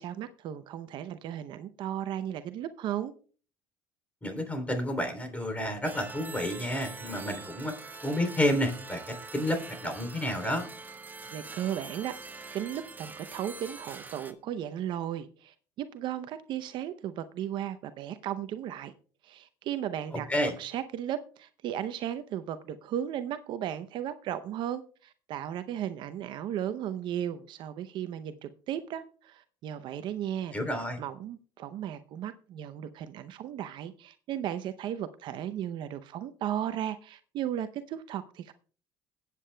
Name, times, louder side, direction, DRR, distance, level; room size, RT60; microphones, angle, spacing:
voice 1, 0.0-3.1 11.3-12.2 12.5-15.5 15.9-18.9 19.2-20.3 20.6-30.6 31.0-38.5, right 10 dB, 60° right, 0.7 m, -35 dB
voice 2, 4.2-7.7 8.0-10.7 20.1-20.5 30.5-31.0, left 1 dB, 15° left, 3.0 m, -30 dB
sound 1, 5.8-14.3, right 3 dB, 20° right, 1.2 m, -44 dB
21.0 x 8.4 x 2.2 m
supercardioid pair, 90°, 9 cm